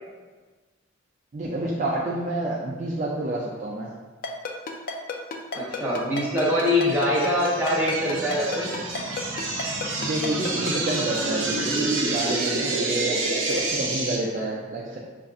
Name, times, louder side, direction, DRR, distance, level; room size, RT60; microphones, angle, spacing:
voice 1, 1.3-3.9 10.0-15.0, right 2 dB, 40° right, -4 dB, 0.3 m, -29 dB
Ringtone, 4.2-10.9, left 5 dB, 45° left, 0.3 m, -31 dB
voice 2, 5.5-8.7, left 1 dB, 10° right, -8 dB, 0.9 m, -23 dB
sound 1, 6.4-14.2, right 2 dB, 75° right, 0.7 m, -28 dB
5.4 x 2.5 x 2.4 m, 1.4 s
head